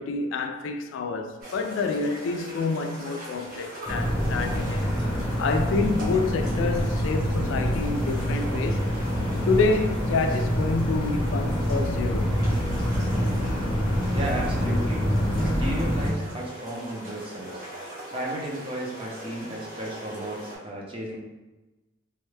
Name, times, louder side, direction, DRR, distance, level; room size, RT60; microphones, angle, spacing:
voice 1, 0.0-4.9 5.4-8.9 9.5-12.4, left 4 dB, 70° left, 0.3 m, -28 dB
sound 1, 1.4-20.6, right 1 dB, 45° right, 1.2 m, -41 dB
sound 2, 3.9-16.1, equal, 30° left, 0.8 m, -26 dB
voice 2, 14.1-15.1 15.3-17.6 18.1-21.2, right 1 dB, 30° right, 0.7 m, -34 dB
3.4 x 2.2 x 3.2 m
head